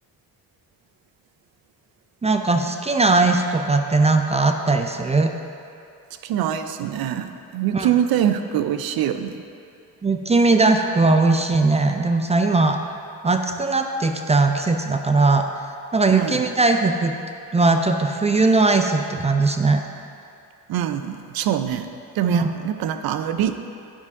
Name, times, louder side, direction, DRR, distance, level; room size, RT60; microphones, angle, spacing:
voice 1, 2.2-5.3 7.7-7.9 10.0-12.8 13.2-15.5 15.9-17.1 17.5-19.8 22.3-22.5, right 3 dB, 20° right, 5 dB, 0.4 m, -19 dB
voice 2, 6.2-9.4 16.1-16.4 20.7-23.6, right 10 dB, 75° right, 9 dB, 0.5 m, -24 dB
9.9 x 5.3 x 3.6 m, 2.5 s
cardioid pair, 80°, 36 cm